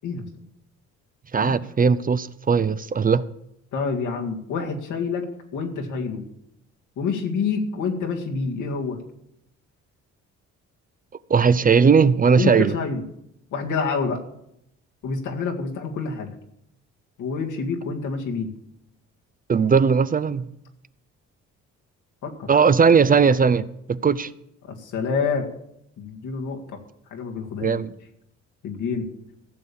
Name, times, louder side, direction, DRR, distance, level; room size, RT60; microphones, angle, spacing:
voice 1, 1.3-3.3 11.3-12.7 19.5-20.5 22.5-24.3 27.6-27.9, right 6 dB, 30° right, 0.5 m, -18 dB
voice 2, 3.7-5.3 5.5-6.2 7.0-9.0 12.3-13.0 13.5-14.2 15.0-16.3 17.2-18.5 22.2-22.5 24.7-25.5 26.0-26.8 27.1-27.8 28.6-29.1, left 5 dB, 80° left, 2.1 m, -27 dB
15.0 x 6.8 x 7.0 m
cardioid pair, 90°, 30 cm